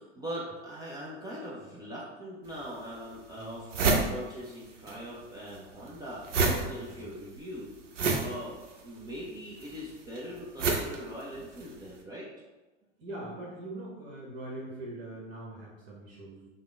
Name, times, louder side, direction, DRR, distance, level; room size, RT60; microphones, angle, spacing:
voice 1, 0.0-3.8 4.1-7.7 8.2-12.3, equal, 10° right, -6 dB, 0.3 m, -41 dB
sound 1, 2.5-2.6 3.1-3.2 3.4-5.0 5.2-11.8, right 3 dB, 75° right, 0.7 m, -30 dB
voice 2, 3.4-3.8 6.7-7.1 13.0-16.5, right 1 dB, 50° right, -4 dB, 1.1 m, -42 dB
3.4 x 2.1 x 3.4 m, 1.2 s
hypercardioid pair, 95°, 37 cm